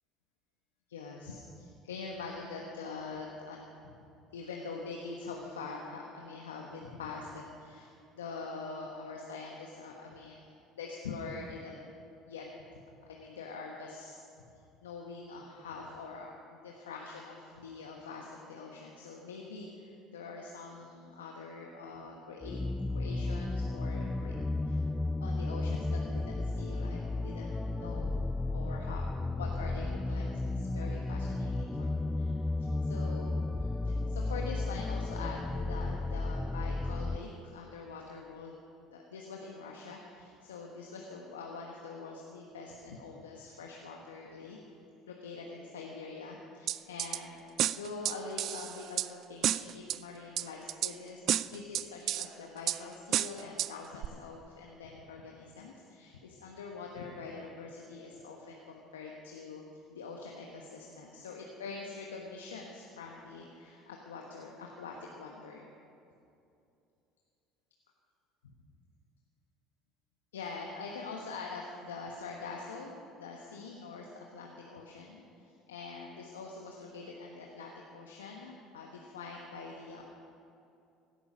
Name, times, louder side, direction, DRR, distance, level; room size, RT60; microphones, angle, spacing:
voice 1, 0.9-4.0 4.3-11.8 12.3-12.5 12.7-12.8 13.1-14.2 14.8-22.6 22.9-24.3 24.6-24.8 25.2-28.2 28.5-29.0 29.4-38.6 38.9-44.6 45.1-51.2 51.5-59.6 59.9-65.7 70.3-80.0, left 4 dB, 85° left, 0 dB, 1.1 m, -44 dB
sound 1, 22.4-37.2, left 2 dB, 15° left, 0.6 m, -33 dB
sound 2, 46.7-47.2 47.6-49.1 49.4-50.0 50.4-50.9 51.3-52.3 52.7-52.8 53.1-53.7 54.0-54.1, right 12 dB, 55° right, 0.3 m, -30 dB
17.0 x 11.5 x 5.1 m, 2.6 s
hypercardioid pair, 65°, 0 cm